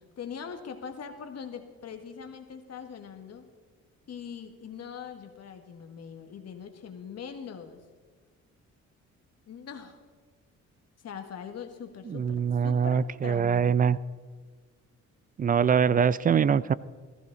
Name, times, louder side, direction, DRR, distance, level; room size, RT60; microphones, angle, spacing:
voice 1, 0.0-3.5 4.1-7.8 9.5-10.0 11.0-13.8, left 7 dB, 55° left, 6 dB, 1.6 m, -42 dB
voice 2, 12.1-14.0 15.4-16.7, right 7 dB, 30° right, 19 dB, 0.4 m, -23 dB
15.0 x 14.5 x 4.0 m, 1.5 s
cardioid pair, 90°, 30 cm